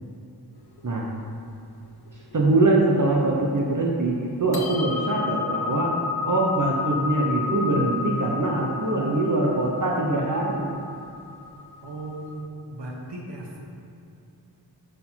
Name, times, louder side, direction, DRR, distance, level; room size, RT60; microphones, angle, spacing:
sound 1, 0.6-2.6 2.9-3.0 3.4-4.0 4.3-12.4, left 5 dB, 65° left, 0.9 m, -32 dB
voice 1, 2.3-4.1 4.4-5.9 6.3-10.7, right 2 dB, 50° right, -2 dB, 0.9 m, -23 dB
voice 2, 11.8-13.6, right 2 dB, 85° right, -1 dB, 1.2 m, -37 dB
6.4 x 4.6 x 5.6 m, 2.6 s
wide cardioid pair, 80°, 40 cm